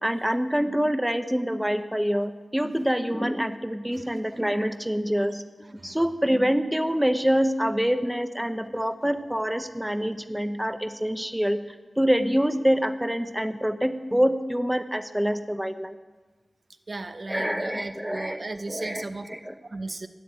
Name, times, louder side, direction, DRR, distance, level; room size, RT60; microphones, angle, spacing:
voice 1, 0.0-5.4 5.8-16.0 17.3-19.5, equal, 5° right, 9 dB, 0.8 m, -26 dB
voice 2, 16.9-19.3 19.7-20.1, right 2 dB, 45° right, 8 dB, 0.8 m, -35 dB
13.0 x 9.4 x 8.4 m, 1.3 s
wide cardioid pair, 70°, 0 cm